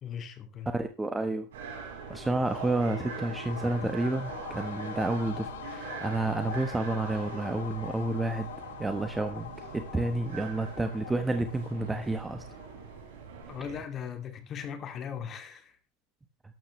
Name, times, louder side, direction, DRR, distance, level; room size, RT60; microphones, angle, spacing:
voice 1, 0.0-0.7 11.8-12.0 13.5-15.8, left 8 dB, 35° left, 2.5 m, -39 dB
voice 2, 0.7-1.5 2.1-8.5 8.8-12.4, right 2 dB, 10° right, 1.2 m, -30 dB
sound 1, 1.5-13.8, right 5 dB, 85° right, 5.4 m, -43 dB
sound 2, 1.7-13.1 13.4-13.5, left 11 dB, 85° left, 1.0 m, -44 dB
12.5 x 12.0 x 3.2 m
supercardioid pair, 110°, 0 cm